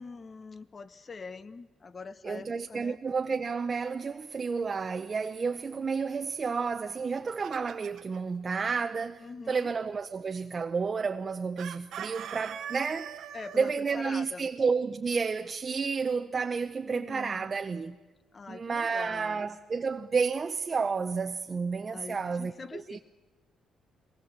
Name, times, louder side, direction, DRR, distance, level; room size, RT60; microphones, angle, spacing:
voice 1, 0.0-3.0 9.2-9.7 13.3-14.5 16.9-17.5 18.3-19.4 21.9-23.0, left 4 dB, 35° left, 1.0 m, -44 dB
voice 2, 2.2-13.2 13.6-18.0 18.5-23.0, right 5 dB, 40° right, 0.8 m, -31 dB
Chicken rooster, 7.0-8.2 11.6-13.7, right 9 dB, 75° right, 1.1 m, -41 dB
22.5 x 19.0 x 7.3 m
cardioid pair, 90°, 0 cm